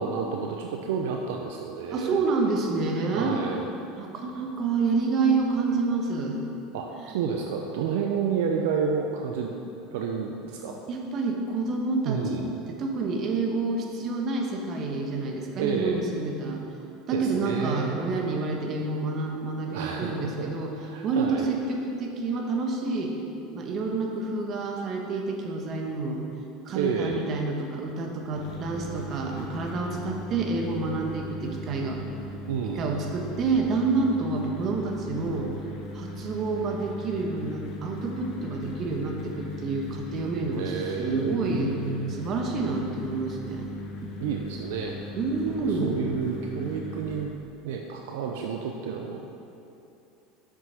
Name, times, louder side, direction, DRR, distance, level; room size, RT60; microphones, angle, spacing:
voice 1, 0.0-2.2 3.1-3.6 6.7-9.5 9.9-10.8 12.0-12.5 15.6-16.0 17.1-18.0 19.7-21.5 26.8-27.3 32.5-32.9 40.5-42.1 44.2-45.0 45.5-47.3 47.6-49.2, right 6 dB, 75° right, 2 dB, 0.6 m, -30 dB
voice 2, 1.9-3.4 4.0-6.4 10.9-12.4 12.7-16.6 17.1-20.7 21.0-23.2 23.5-26.2 26.6-32.0 32.7-35.5 35.9-41.8 42.1-43.7 44.0-44.1 45.1-46.0, right 3 dB, 45° right, 1 dB, 1.4 m, -28 dB
sound 1, 28.3-47.3, left 1 dB, 55° left, 1.3 m, -39 dB
7.5 x 6.4 x 5.7 m, 2.8 s
hypercardioid pair, 95°, 0 cm